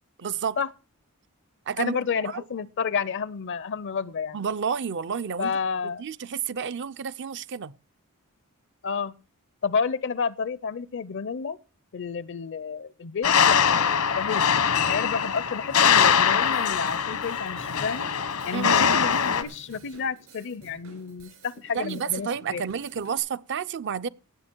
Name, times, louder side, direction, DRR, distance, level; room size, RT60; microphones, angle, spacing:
voice 1, 0.2-0.6 1.7-2.0 2.2-2.4 4.3-5.6 6.0-7.8 18.5-18.8 21.7-24.1, right 7 dB, 55° right, 0.5 m, -30 dB
voice 2, 1.8-4.4 5.4-6.0 8.8-9.1 9.6-11.6 11.9-14.4 14.9-18.1 18.5-22.6, left 5 dB, 55° left, 0.5 m, -30 dB
sound 1, 13.2-19.4, left 7 dB, 85° left, 1.2 m, -22 dB
Drum kit / Drum, 15.7-23.2, right 2 dB, 75° right, 5.6 m, -51 dB
18.0 x 7.8 x 4.5 m
head